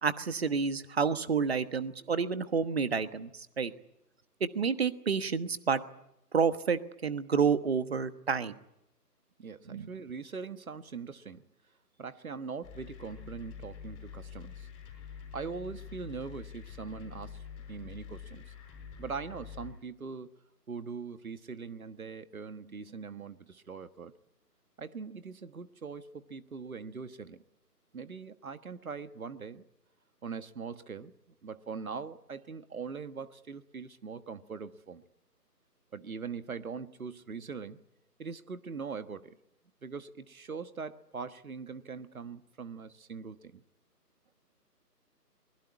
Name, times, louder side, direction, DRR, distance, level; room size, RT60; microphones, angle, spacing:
voice 1, 0.0-3.7 4.4-5.8 6.3-8.5 9.7-9.9, right 6 dB, 40° right, 1.2 m, -29 dB
voice 2, 9.4-11.4 12.0-14.7 15.3-17.4 17.7-18.5 19.0-20.3 20.7-24.1 24.8-27.4 27.9-29.6 30.2-31.1 31.4-35.0 35.9-37.8 38.2-39.4 39.8-43.6, right 5 dB, 60° right, 1.5 m, -41 dB
sound 1, 12.6-19.7, left 7 dB, 10° left, 5.7 m, -46 dB
23.0 x 21.0 x 9.6 m
figure-of-eight pair, 155°, 48 cm